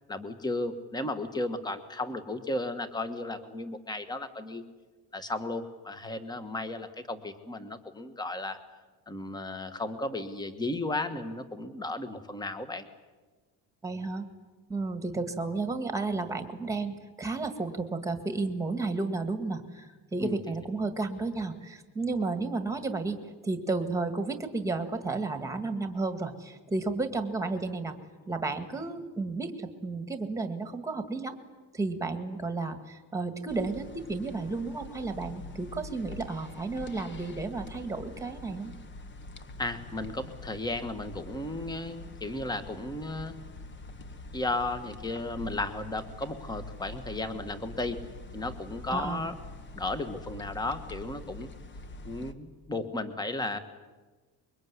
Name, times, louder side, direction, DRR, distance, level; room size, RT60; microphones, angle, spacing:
voice 1, 0.1-4.6 5.1-8.6 9.1-12.9 20.2-20.4 39.6-43.4 44.3-48.0 48.3-49.3 49.7-51.5 52.0-53.6, left 2 dB, 10° left, 10 dB, 1.4 m, -34 dB
voice 2, 13.8-14.3 14.7-23.2 23.4-28.0 28.3-31.4 31.7-38.7 48.9-49.2, right 3 dB, 10° right, 8 dB, 1.9 m, -32 dB
sound 1, 33.5-52.3, left 2 dB, 25° left, 1.2 m, -45 dB
25.0 x 23.0 x 9.6 m, 1.3 s
cardioid pair, 175°, 41 cm